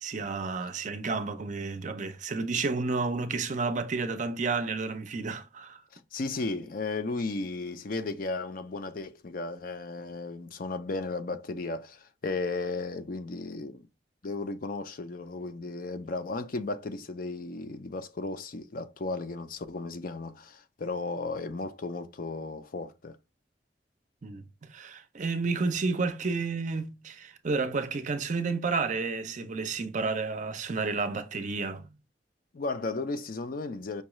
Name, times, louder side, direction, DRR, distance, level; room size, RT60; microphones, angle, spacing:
voice 1, 0.0-5.8 24.2-24.4 24.7-31.9, right 4 dB, 45° right, 0.5 m, -31 dB
voice 2, 5.9-13.9 14.2-23.2 32.5-34.0, left 3 dB, 50° left, 0.5 m, -35 dB
5.4 x 2.3 x 3.0 m
head